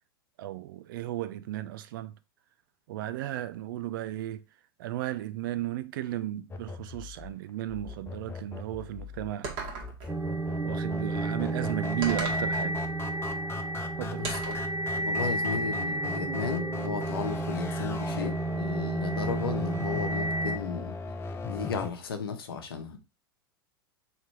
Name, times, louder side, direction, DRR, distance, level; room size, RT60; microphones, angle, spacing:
voice 1, 0.4-2.1 2.9-4.4 4.8-9.5 10.6-12.8 14.0-14.3, right 14 dB, 60° right, 0.4 m, -34 dB
sound 1, 6.5-21.9, left 3 dB, 20° left, 0.6 m, -39 dB
sound 2, 9.4-10.1 12.0-12.5 14.2-14.7, right 4 dB, 45° right, 1.4 m, -36 dB
sound 3, 10.1-20.6, right 2 dB, 20° right, 0.8 m, -31 dB
voice 2, 14.2-14.6 15.0-21.0 21.5-23.0, left 6 dB, 75° left, 0.9 m, -35 dB
3.2 x 3.0 x 4.6 m
hypercardioid pair, 95°, 12 cm